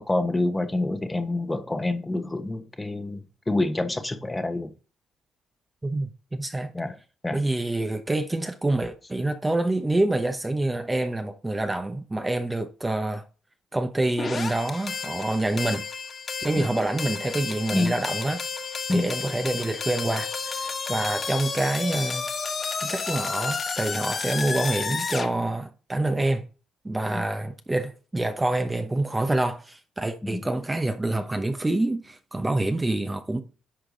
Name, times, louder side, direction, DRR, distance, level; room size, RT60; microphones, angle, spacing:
voice 1, 0.0-4.7 6.7-7.0 7.2-7.4 16.6-16.7 17.7-17.9 18.9-19.1 27.1-27.2 30.2-30.4, left 2 dB, 15° left, 1.1 m, -27 dB
voice 2, 5.8-6.7 7.3-13.2 13.7-15.8 16.4-18.4 18.9-22.3 22.8-26.4 26.8-33.4, right 2 dB, 15° right, 0.9 m, -27 dB
sound 1, 14.2-25.3, left 5 dB, 45° left, 1.5 m, -31 dB
10.0 x 4.7 x 3.9 m
cardioid pair, 90°, 0 cm